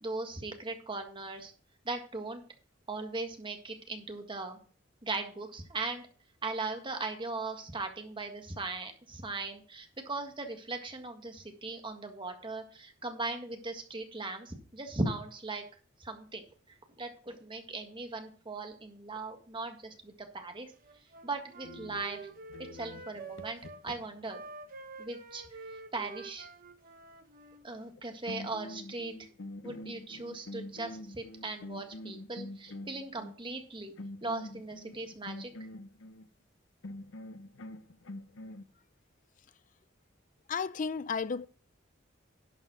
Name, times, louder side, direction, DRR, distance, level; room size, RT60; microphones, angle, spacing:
voice 1, 0.0-1.5 1.8-2.4 2.9-4.6 5.0-6.1 6.4-15.6 16.0-16.4 17.0-20.7 21.2-22.2 22.7-24.4 25.0-25.4 25.9-26.5 27.6-29.1 29.6-33.9 34.2-35.5, right 3 dB, 25° right, 1.7 m, -38 dB
Wind instrument woodwind instrument, 20.8-23.8 24.2-27.6, right 4 dB, 45° right, 1.1 m, -48 dB
sound 1, 21.6-24.3 27.8-28.0 28.3-33.4 34.0-36.3 36.8-38.6, left 1 dB, 75° left, 0.7 m, -45 dB
voice 2, 40.5-41.5, left 5 dB, 40° left, 0.4 m, -33 dB
11.5 x 5.4 x 6.1 m
head